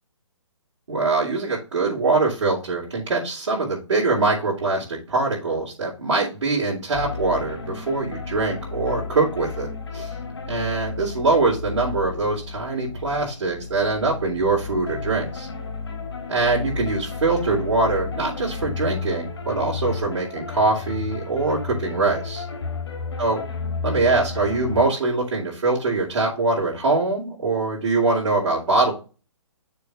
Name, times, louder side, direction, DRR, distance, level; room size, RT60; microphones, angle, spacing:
voice 1, 0.9-10.1 10.5-15.5 16.3-22.5 23.2-23.4 23.8-28.9, right 3 dB, 65° right, -7 dB, 3.7 m, -23 dB
sound 1, 6.9-24.8, left 5 dB, 60° left, 3.4 m, -32 dB
6.8 x 4.7 x 4.9 m, 0.32 s
hypercardioid pair, 165°, 16 cm